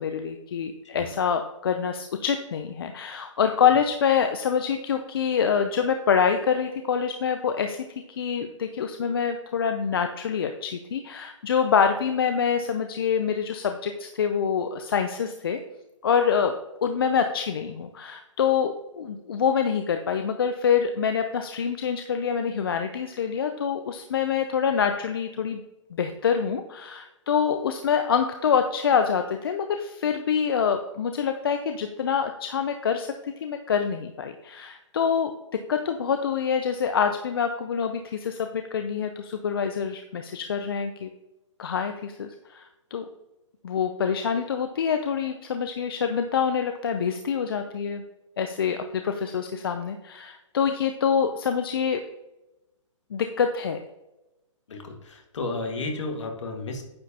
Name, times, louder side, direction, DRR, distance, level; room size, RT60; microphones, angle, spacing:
voice 1, 0.0-15.6 16.0-25.6 25.9-41.1 41.6-43.1 43.6-48.0 48.4-52.0 53.1-53.8, left 7 dB, 45° left, 7 dB, 0.5 m, -26 dB
voice 2, 54.7-56.8, left 3 dB, 65° left, 3 dB, 1.8 m, -32 dB
9.5 x 7.3 x 2.8 m, 0.97 s
hypercardioid pair, 170°, 17 cm